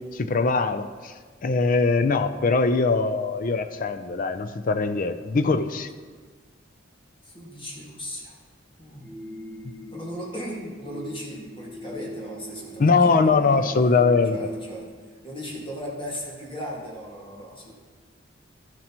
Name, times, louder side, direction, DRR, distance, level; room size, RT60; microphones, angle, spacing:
voice 1, 0.1-1.1 1.4-5.9 12.8-14.4, left 4 dB, 45° left, 9 dB, 0.5 m, -22 dB
voice 2, 7.2-8.4 8.8-9.2 9.9-13.7 14.3-14.9 15.2-17.7, equal, 25° left, -4 dB, 1.9 m, -37 dB
sound 1, 9.0-14.9, right 1 dB, ahead, 2.3 m, -41 dB
12.5 x 7.3 x 3.0 m, 1.5 s
head